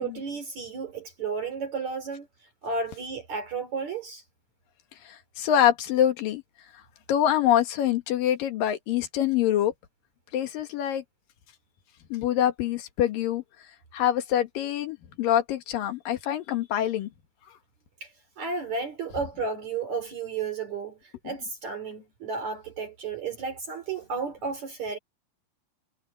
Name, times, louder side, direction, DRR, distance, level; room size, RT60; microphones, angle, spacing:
voice 1, 0.0-2.3 2.6-4.2 18.0-18.1 18.4-25.0, right 4 dB, 55° right, 4.6 m, -33 dB
voice 2, 5.1-6.4 7.1-9.7 10.3-11.0 12.1-13.4 13.9-17.1, left 11 dB, 80° left, 3.3 m, -25 dB
omnidirectional pair, 3.9 m